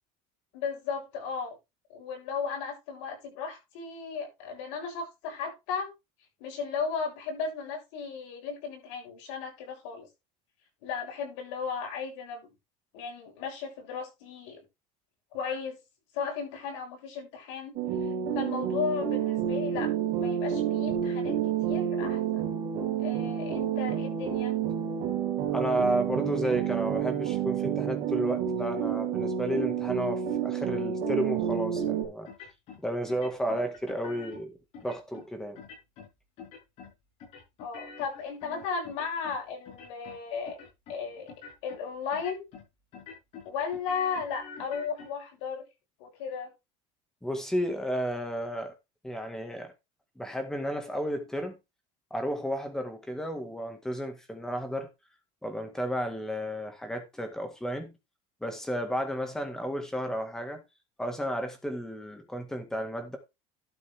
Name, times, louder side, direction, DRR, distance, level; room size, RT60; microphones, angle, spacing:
voice 1, 0.5-1.6 1.9-5.9 6.4-10.1 10.8-12.5 12.9-14.6 15.3-15.8 16.1-17.8 18.0-22.4 23.0-24.5 37.6-40.6 40.9-41.3 41.6-42.5 43.4-45.6 46.0-46.5, left 6 dB, 70° left, 7.4 m, -35 dB
sound 1, 17.8-32.1, right 9 dB, 40° right, 4.6 m, -29 dB
voice 2, 25.5-32.3 32.8-35.6 47.2-48.7 49.0-49.7 50.2-51.6 52.1-54.9 55.4-57.9 58.4-60.6 61.0-63.2, equal, 5° left, 1.7 m, -32 dB
sound 2, 32.2-32.8 33.1-34.4 34.7-35.2 35.5-36.1 36.4-36.9 37.2-39.4 39.6-40.2 40.5-41.0 41.3-41.8 42.1-42.7 42.9-45.1, left 5 dB, 45° left, 6.8 m, -46 dB
12.0 x 7.3 x 3.5 m
cardioid pair, 180°, 15 cm